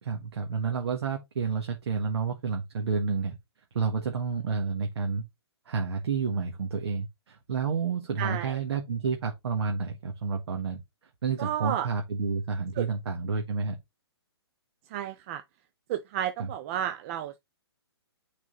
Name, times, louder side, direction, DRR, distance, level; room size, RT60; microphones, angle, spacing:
voice 1, 0.0-3.4 3.7-5.2 5.6-10.8 11.2-13.8 16.4-16.5, right 5 dB, 70° right, 1.6 m, -30 dB
voice 2, 8.2-8.6 11.4-11.9 12.8-12.9 14.9-15.4 15.9-17.4, right 10 dB, 30° right, 0.6 m, -32 dB
6.3 x 4.0 x 3.8 m
hypercardioid pair, 150°, 14 cm